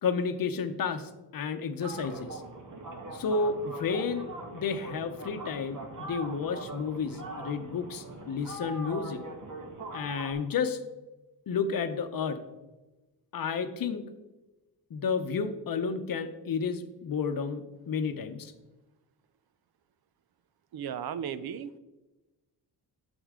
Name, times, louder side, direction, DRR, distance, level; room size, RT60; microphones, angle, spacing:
voice 1, 0.0-2.4 3.1-9.2 9.9-10.8 11.5-12.4 13.3-14.0 14.9-18.5, left 5 dB, 55° left, 10 dB, 0.8 m, -31 dB
sound 1, 1.8-10.3, right 2 dB, 50° right, 1.5 m, -42 dB
voice 2, 20.7-21.8, right 8 dB, 65° right, 15 dB, 0.6 m, -35 dB
8.8 x 7.2 x 3.6 m, 1.1 s
cardioid pair, 100°, 40 cm